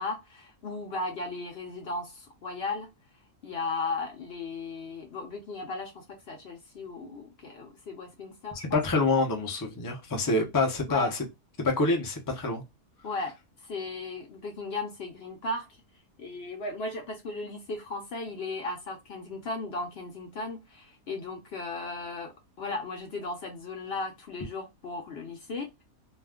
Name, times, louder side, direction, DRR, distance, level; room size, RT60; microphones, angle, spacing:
voice 1, 0.0-2.9 3.4-8.8 10.9-11.1 13.0-13.3 13.6-15.7 16.2-25.8, left 3 dB, 60° left, 0.7 m, -36 dB
voice 2, 8.7-11.2 11.6-12.6, left 3 dB, 35° left, 0.3 m, -26 dB
2.4 x 2.2 x 3.4 m
omnidirectional pair, 1.5 m